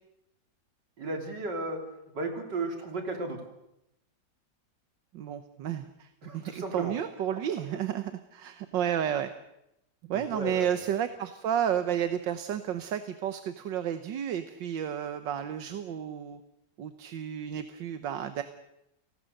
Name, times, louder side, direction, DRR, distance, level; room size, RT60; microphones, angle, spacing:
voice 1, 1.0-1.8 2.1-3.4 6.2-7.0 10.1-10.7, right 2 dB, 75° right, 3 dB, 4.0 m, -34 dB
voice 2, 5.1-9.3 10.1-16.4 16.8-18.4, right 9 dB, 90° right, 10 dB, 1.7 m, -32 dB
30.0 x 18.5 x 6.6 m, 0.86 s
omnidirectional pair, 1.9 m